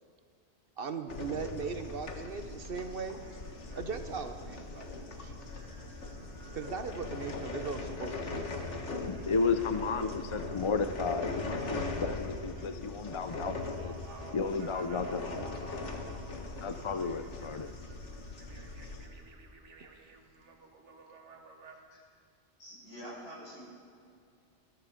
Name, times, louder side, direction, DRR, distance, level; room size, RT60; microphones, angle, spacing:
voice 1, 0.8-3.2 3.7-5.3 6.5-8.5 19.8-19.9, right 5 dB, 55° right, 8 dB, 1.0 m, -39 dB
sound 1, 1.1-19.1, left 3 dB, 85° left, 1.8 m, -40 dB
sound 2, 3.2-21.8, right 3 dB, 85° right, 1.6 m, -54 dB
voice 2, 9.1-13.9 14.3-15.6 16.6-17.8, left 4 dB, 40° left, 10 dB, 0.4 m, -33 dB
voice 3, 22.6-23.6, equal, 65° left, -5 dB, 5.4 m, -46 dB
21.5 x 13.5 x 5.1 m, 2.4 s
omnidirectional pair, 1.2 m